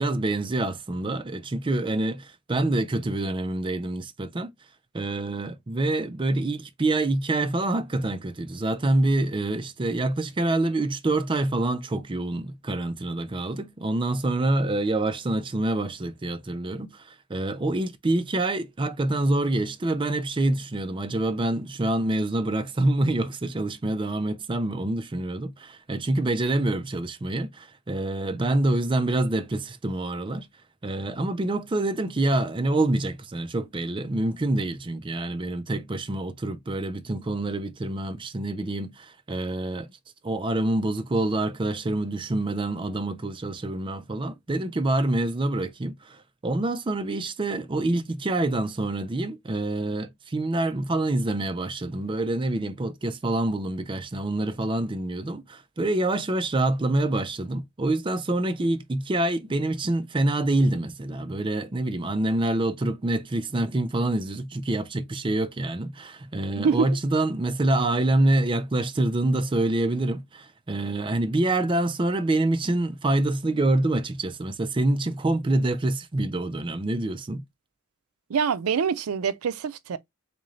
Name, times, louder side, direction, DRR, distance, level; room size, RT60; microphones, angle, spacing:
voice 1, 0.0-4.5 4.9-30.5 30.8-39.9 40.2-77.4, right 2 dB, 25° right, 0.4 m, -26 dB
voice 2, 66.5-66.9 78.3-80.0, right 6 dB, 85° right, 0.4 m, -25 dB
3.7 x 2.6 x 3.1 m
head